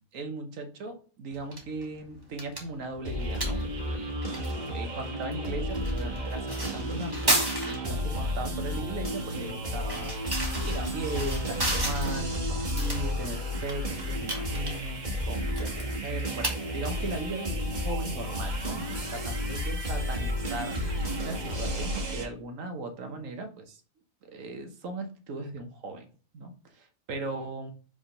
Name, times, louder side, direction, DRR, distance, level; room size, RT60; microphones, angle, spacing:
voice 1, 0.1-4.4 4.7-7.2 7.6-10.1 10.6-23.8 24.2-27.7, right 2 dB, 75° right, 6 dB, 1.4 m, -38 dB
sound 1, 1.3-19.7, right 1 dB, 20° right, 1.4 m, -36 dB
sound 2, 3.0-22.3, equal, 35° right, 1.4 m, -32 dB
5.2 x 3.5 x 5.4 m, 0.39 s
omnidirectional pair, 1.4 m